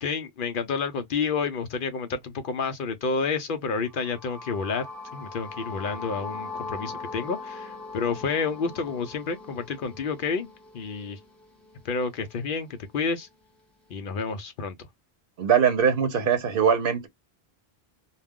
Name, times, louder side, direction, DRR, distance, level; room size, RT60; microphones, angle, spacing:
voice 1, 0.0-10.5 10.7-11.2 11.8-13.3 13.9-14.9, left 5 dB, 60° left, 0.7 m, -30 dB
sound 1, 3.8-11.8, left 3 dB, ahead, 0.7 m, -40 dB
voice 2, 15.4-17.1, right 7 dB, 65° right, 0.9 m, -21 dB
2.3 x 2.0 x 3.5 m
omnidirectional pair, 1.1 m